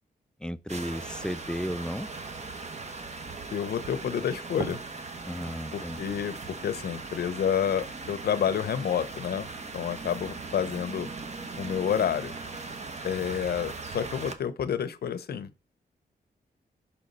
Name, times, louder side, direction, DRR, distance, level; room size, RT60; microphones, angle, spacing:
voice 1, 0.4-2.1 5.2-6.0, equal, 5° left, 0.4 m, -34 dB
sound 1, 0.7-14.4, right 3 dB, 45° right, 1.0 m, -39 dB
voice 2, 3.5-4.8 5.7-11.1 11.6-12.3 13.0-15.5, left 8 dB, 75° left, 0.7 m, -29 dB
5.7 x 3.9 x 5.3 m
cardioid pair, 90°, 17 cm